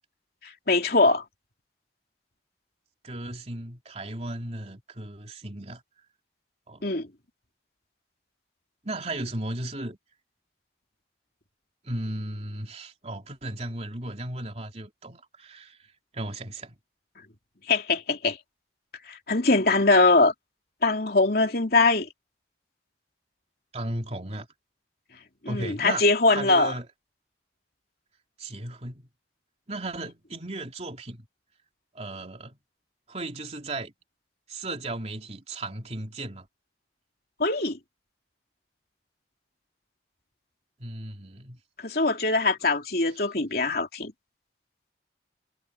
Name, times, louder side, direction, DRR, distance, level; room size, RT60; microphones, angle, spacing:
voice 1, 0.4-1.2 6.8-7.1 17.7-18.4 19.1-20.3 20.8-22.1 25.4-26.7 37.4-37.8 41.8-44.1, left 3 dB, 55° left, 3.2 m, -22 dB
voice 2, 3.0-5.8 6.7-6.8 8.8-10.0 11.8-15.8 16.1-16.8 23.7-24.5 25.5-26.0 26.3-26.9 28.4-29.1 29.7-31.3 32.0-32.6 33.1-33.9 34.5-36.5 40.8-41.6, right 2 dB, 35° right, 3.3 m, -35 dB
head